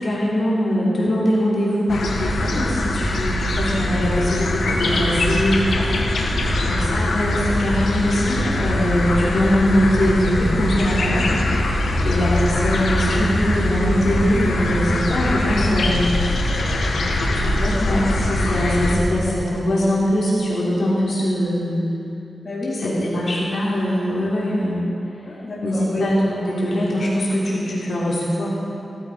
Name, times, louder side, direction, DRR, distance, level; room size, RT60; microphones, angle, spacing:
voice 1, 0.0-11.4 12.0-16.1 17.3-21.8 22.8-24.8 25.6-28.5, equal, 55° left, -7 dB, 3.6 m, -22 dB
sound 1, 1.9-18.9, left 1 dB, 90° left, 2.0 m, -22 dB
voice 2, 6.1-6.7 11.9-12.2 16.3-17.2 22.4-23.2 25.2-26.1, left 1 dB, 35° left, -8 dB, 3.5 m, -32 dB
17.0 x 14.0 x 5.0 m, 2.8 s
wide cardioid pair, 150°, 0 cm